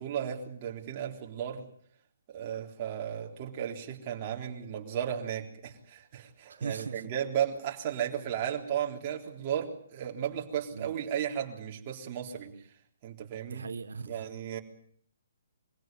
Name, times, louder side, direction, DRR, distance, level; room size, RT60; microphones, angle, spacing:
voice 1, 0.0-1.6 2.3-12.5 13.0-13.6 14.1-14.6, right 9 dB, 30° right, 1 dB, 3.7 m, -34 dB
voice 2, 6.5-7.1 10.7-10.9 13.5-14.3, right 5 dB, 85° right, 8 dB, 1.6 m, -39 dB
23.5 x 17.0 x 9.2 m, 0.62 s
hypercardioid pair, 160°, 0 cm